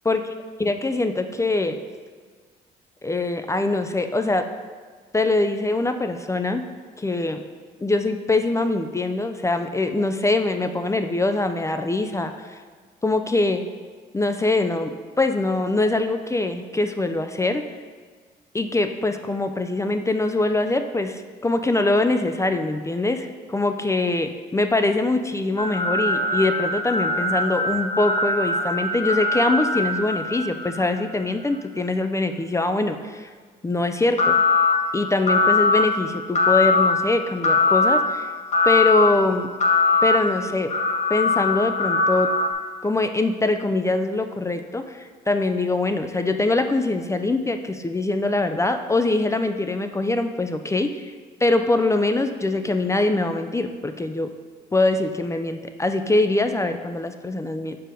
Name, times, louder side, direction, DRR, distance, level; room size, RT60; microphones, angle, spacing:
voice 1, 0.6-1.8 3.0-4.5 5.1-6.7 7.0-7.4 7.8-12.3 13.0-13.6 14.1-17.6 18.5-33.3 33.6-34.4 34.9-38.3 38.7-39.5 40.0-40.7 41.1-42.3 42.8-50.9 51.4-54.3 54.7-57.8, left 2 dB, 15° left, 7 dB, 0.4 m, -23 dB
sound 1, 25.6-30.9 34.2-34.7 35.3-35.8 36.3-36.9 37.4-38.0 38.5-39.1 39.6-40.2 40.7-42.5, left 3 dB, 40° left, 1.0 m, -21 dB
4.9 x 4.6 x 5.0 m, 1.5 s
supercardioid pair, 70°, 19 cm